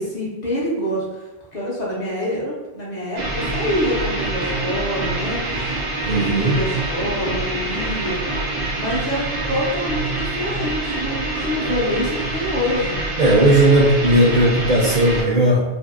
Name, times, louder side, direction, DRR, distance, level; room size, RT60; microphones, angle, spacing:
voice 1, 0.0-5.8 6.0-8.2 8.6-13.0, left 1 dB, 50° left, -6 dB, 0.7 m, -26 dB
sound 1, 3.2-15.2, right 2 dB, 75° right, 1.1 m, -26 dB
voice 2, 6.1-6.6 13.2-15.6, right 1 dB, 55° right, -4 dB, 0.6 m, -16 dB
2.6 x 2.5 x 2.4 m, 1.1 s
omnidirectional pair, 1.1 m